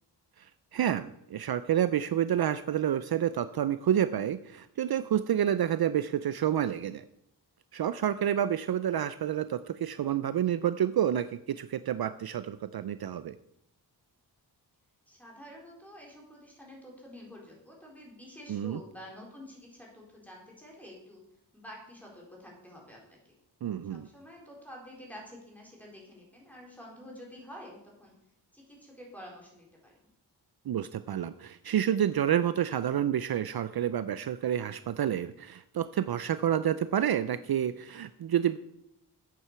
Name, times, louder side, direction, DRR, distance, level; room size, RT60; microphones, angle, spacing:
voice 1, 0.4-7.0 7.7-13.4 18.5-18.8 23.6-24.1 30.7-38.6, right 10 dB, 60° right, 13 dB, 0.5 m, -29 dB
voice 2, 15.1-21.2 21.5-23.2 23.9-28.2 28.5-30.1, equal, 5° left, -2 dB, 4.2 m, -49 dB
8.8 x 7.7 x 6.9 m, 0.78 s
wide cardioid pair, 100°, 42 cm